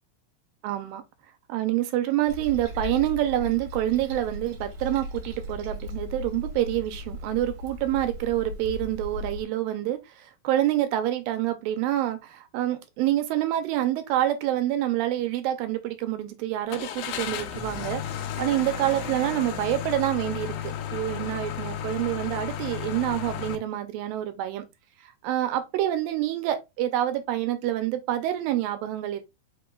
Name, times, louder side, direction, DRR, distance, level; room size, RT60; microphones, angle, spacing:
voice 1, 0.6-1.0 1.5-18.0 18.4-24.7 25.2-29.2, right 13 dB, 85° right, 2.4 m, -27 dB
Toilet flush, 2.3-9.5, left 1 dB, 65° right, 2.4 m, -37 dB
Car / Engine starting, 16.7-23.6, left 8 dB, 80° left, 1.9 m, -33 dB
5.6 x 3.8 x 2.2 m
omnidirectional pair, 4.2 m